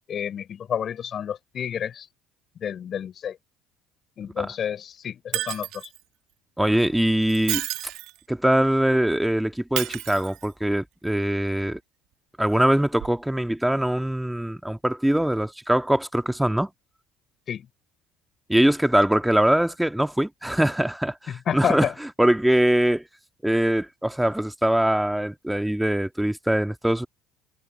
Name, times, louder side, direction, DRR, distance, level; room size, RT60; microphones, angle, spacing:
voice 1, 0.1-2.1 2.6-3.4 4.2-5.9 17.5-17.7 21.3-21.9, left 8 dB, 50° left, 4.6 m, -30 dB
Shatter, 5.3-6.0 7.2-8.2 9.8-10.7 13.0-13.1, right 17 dB, 70° right, 1.2 m, -31 dB
voice 2, 6.6-7.7 8.3-11.8 12.4-16.7 18.5-23.1 23.4-27.1, right 1 dB, 5° right, 1.9 m, -22 dB
hypercardioid pair, 65°, 0 cm